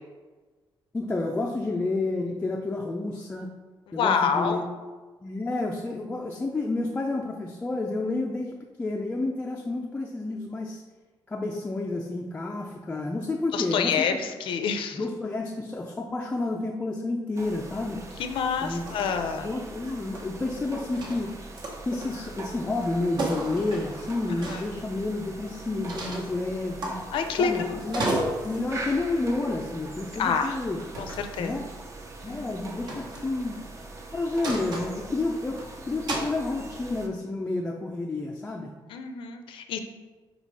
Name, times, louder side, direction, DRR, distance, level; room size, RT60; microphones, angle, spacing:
voice 1, 0.9-3.5 3.9-4.7 5.2-10.8 11.3-14.1 14.9-18.0 18.6-18.8 19.4-21.3 21.8-27.0 27.4-28.1 28.4-30.8 31.4-31.7 32.2-33.6 34.1-38.7, left 2 dB, 15° left, 0 dB, 0.4 m, -30 dB
voice 2, 3.9-4.7 13.5-15.0 18.2-19.5 24.5-24.6 27.1-28.4 30.1-30.6 31.0-31.6 32.3-32.4 38.9-39.8, left 6 dB, 80° left, 7 dB, 0.6 m, -28 dB
sound 1, 17.3-37.1, right 2 dB, 35° right, 0.7 m, -42 dB
sound 2, 18.9-19.1 19.4-20.5 20.9-22.3 22.7-22.9 23.2-24.7 25.8-26.3 26.8-27.5 27.8-28.7 29.8-30.0 30.8-31.3 32.9-33.3 34.4-35.6 36.1-36.3, right 1 dB, 60° right, 1.1 m, -33 dB
4.9 x 4.1 x 4.7 m, 1.3 s
wide cardioid pair, 165°, 9 cm